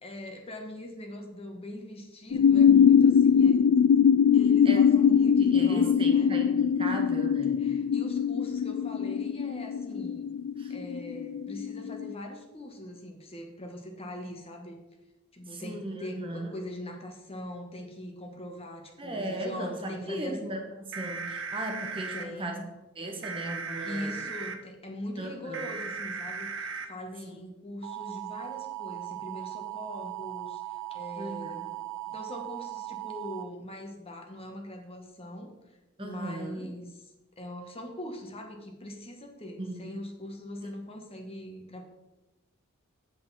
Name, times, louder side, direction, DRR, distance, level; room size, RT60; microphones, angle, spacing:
voice 1, 0.0-3.6 4.3-6.3 7.6-10.3 10.7-14.8 15.3-20.4 22.1-22.6 23.8-31.6 32.1-35.5 36.0-37.0 37.4-41.8, left 1 dB, 30° left, 3 dB, 1.3 m, -41 dB
sound 1, 2.3-12.1, left 7 dB, 70° left, 0.3 m, -22 dB
voice 2, 5.4-7.6 10.6-10.7 15.5-16.5 19.0-22.6 23.0-24.3 25.2-25.8 27.3-27.4 31.2-31.7 36.0-36.7 39.6-39.9 40.6-40.7, right 1 dB, 25° right, 2 dB, 1.2 m, -37 dB
sound 2, 20.9-22.2 23.2-24.6 25.5-26.9 27.8-33.4, right 7 dB, 65° right, 0.9 m, -37 dB
8.1 x 7.8 x 4.2 m, 0.99 s
head